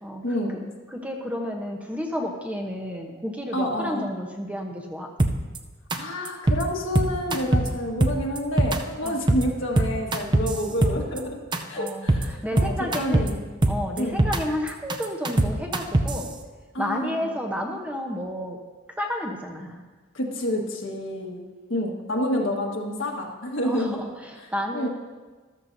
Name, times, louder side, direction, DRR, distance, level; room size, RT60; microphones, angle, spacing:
voice 1, 0.2-0.6 3.5-4.1 6.0-13.4 14.0-14.2 16.7-17.3 20.1-21.4 21.7-24.0 24.7-24.9, left 1 dB, 65° left, 0 dB, 1.5 m, -28 dB
voice 2, 0.9-5.1 9.0-9.2 9.8-9.9 11.7-13.3 13.7-16.3 16.8-18.6 19.0-19.8 22.3-22.5 23.6-24.9, equal, 5° right, 1 dB, 0.9 m, -31 dB
sound 1, 5.2-5.6 5.9-6.0 6.3-6.6 7.0-7.7 8.0-8.8 9.1-9.4 9.8-11.2 11.5-11.6 11.9-12.2 12.6-13.3 13.6-14.4 14.7-16.2, right 2 dB, 20° right, 0.5 m, -21 dB
13.5 x 13.0 x 2.7 m, 1.3 s
head